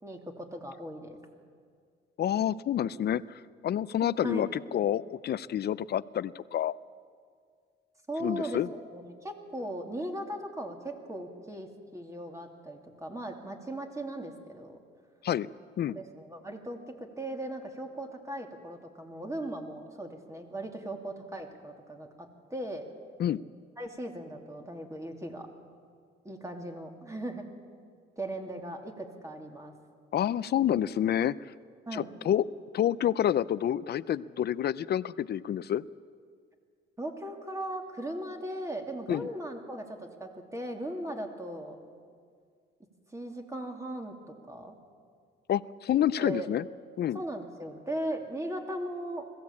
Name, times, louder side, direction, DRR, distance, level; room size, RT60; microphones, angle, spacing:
voice 1, 0.0-1.2 4.2-4.5 8.1-8.6 8.9-14.8 15.9-22.9 23.8-25.5 26.2-27.4 28.2-29.7 31.9-32.1 37.0-41.8 43.1-44.7 46.2-46.5 47.1-49.3, right 1 dB, 15° right, 3 dB, 2.6 m, -38 dB
voice 2, 2.2-3.2 3.6-6.7 8.2-8.7 15.2-15.5 15.8-16.0 23.2-23.4 30.1-31.3 31.9-32.4 32.7-35.8 39.1-39.3 45.5-46.7 47.0-47.2, left 10 dB, 55° left, 18 dB, 0.5 m, -28 dB
21.0 x 15.0 x 8.6 m, 2.1 s
cardioid pair, 90°, 20 cm